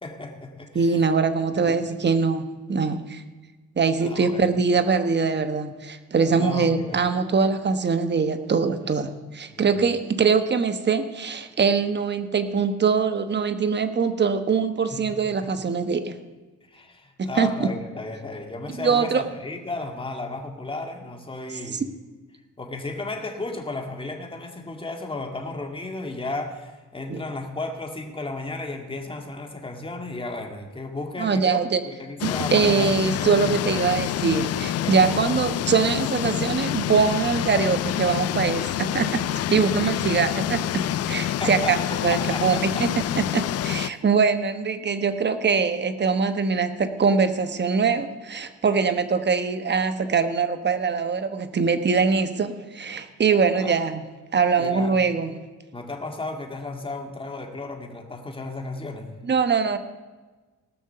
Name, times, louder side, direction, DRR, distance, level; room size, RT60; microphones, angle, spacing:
voice 1, 0.0-1.1 1.6-1.8 4.0-4.4 6.3-7.0 9.5-9.9 14.9-15.2 15.4-15.5 16.7-21.9 22.6-34.0 34.7-35.3 41.2-42.9 43.1-43.2 43.8-44.0 53.5-53.8 54.6-54.9 55.7-59.1, left 2 dB, 15° left, 3 dB, 2.0 m, -34 dB
voice 2, 0.7-3.2 3.8-16.1 17.2-17.7 18.8-19.2 27.1-27.2 31.2-31.8 32.2-39.2 39.5-42.9 43.3-54.0 54.3-55.3 59.3-59.8, right 5 dB, 35° right, 10 dB, 1.2 m, -23 dB
sound 1, 32.2-43.9, left 12 dB, 55° left, 0.4 m, -27 dB
18.0 x 6.4 x 6.7 m, 1.3 s
cardioid pair, 90°, 30 cm